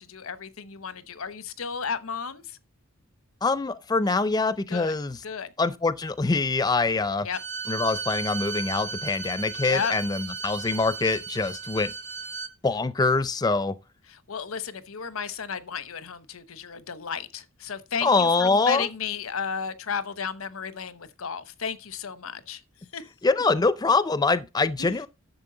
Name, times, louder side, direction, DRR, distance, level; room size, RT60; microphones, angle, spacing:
voice 1, 0.0-2.6 4.7-5.0 5.2-5.5 7.2-7.4 9.7-9.9 14.1-22.6 22.9-23.0 24.8-25.0, left 6 dB, 85° left, 0.9 m, -33 dB
voice 2, 3.4-5.2 5.6-7.3 7.7-11.9 12.6-13.7 18.0-18.9 23.2-25.1, left 3 dB, 20° left, 0.4 m, -24 dB
Bowed string instrument, 7.3-12.5, right 5 dB, 55° right, 0.9 m, -35 dB
10.5 x 7.2 x 3.9 m
head